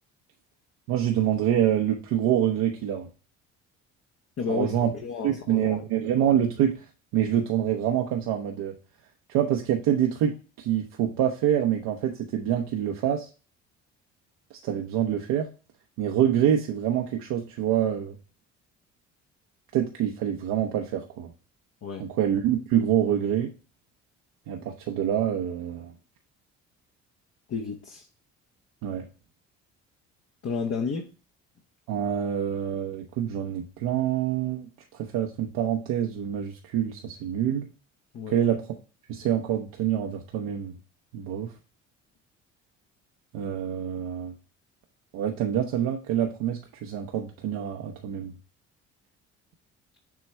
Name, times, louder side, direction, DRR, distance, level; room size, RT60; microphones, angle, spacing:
voice 1, 0.9-3.1 4.5-4.9 5.2-6.8 7.1-8.7 9.3-13.3 14.6-15.5 16.0-18.1 19.7-21.3 22.0-23.5 24.5-25.9 28.8-29.1 31.9-37.7 38.3-38.7 39.1-40.8 41.1-41.5 43.3-44.3 45.1-48.3, right 10 dB, 70° right, 0.9 m, -26 dB
voice 2, 4.4-5.8 21.8-22.1 27.5-28.1 30.4-31.1 38.1-38.4, left 5 dB, 45° left, 0.9 m, -32 dB
7.2 x 3.1 x 4.4 m
hypercardioid pair, 60°, 35 cm